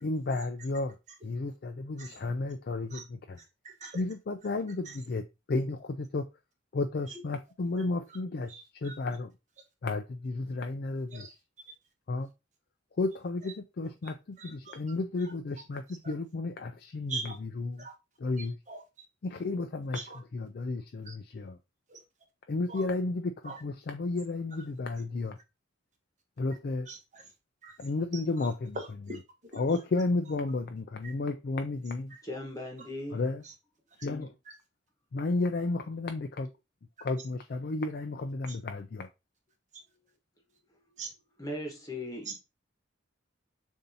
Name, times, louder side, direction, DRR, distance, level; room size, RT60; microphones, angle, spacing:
voice 1, 0.0-3.4 3.9-6.3 6.7-8.5 8.8-9.3 9.8-11.3 12.1-12.3 13.0-17.8 18.2-18.6 19.2-20.0 20.3-21.6 22.5-25.4 26.4-26.9 27.8-28.8 29.5-32.1 33.1-33.4 34.0-34.3 35.1-36.5 37.0-39.1, left 3 dB, 55° left, 0.4 m, -32 dB
voice 2, 3.4-4.0 4.8-5.0 7.1-7.2 8.1-8.2 8.5-9.0 11.1-11.3 13.4-13.5 14.4-14.8 15.2-15.3 16.0-16.1 17.1-17.4 17.8-17.9 18.4-18.8 19.9-20.2 21.0-21.1 21.9-22.0 22.7-22.8 23.4-23.6 26.9-27.2 27.6-27.8 28.1-29.2 31.0-31.1 32.1-32.2 33.4-33.5 34.0-34.1 34.5-34.6 38.5-38.6 41.0-41.1 42.2-42.4, right 3 dB, 40° right, 1.2 m, -43 dB
voice 3, 32.2-33.2 41.4-42.3, left 1 dB, 20° left, 1.2 m, -38 dB
6.8 x 2.7 x 2.7 m
head